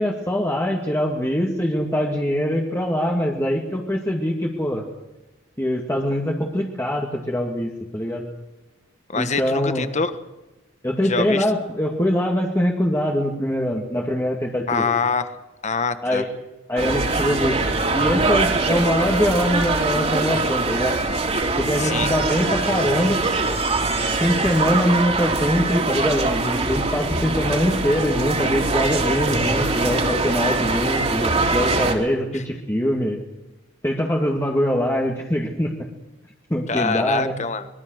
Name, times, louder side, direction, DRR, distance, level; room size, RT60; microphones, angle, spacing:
voice 1, 0.0-4.8 5.6-8.3 9.1-9.8 10.8-14.9 16.0-16.3 16.7-17.6 17.9-21.0 21.6-23.2 24.2-33.2 33.8-35.7 36.5-37.4, equal, 15° left, -1 dB, 2.2 m, -23 dB
voice 2, 9.1-10.1 11.0-11.5 14.7-15.3 15.6-16.2 21.8-22.1 32.3-32.4 36.7-37.7, left 4 dB, 40° left, 10 dB, 1.4 m, -24 dB
sound 1, 16.8-31.9, right 3 dB, 35° right, 3.5 m, -23 dB
24.0 x 22.0 x 6.5 m, 1.0 s
head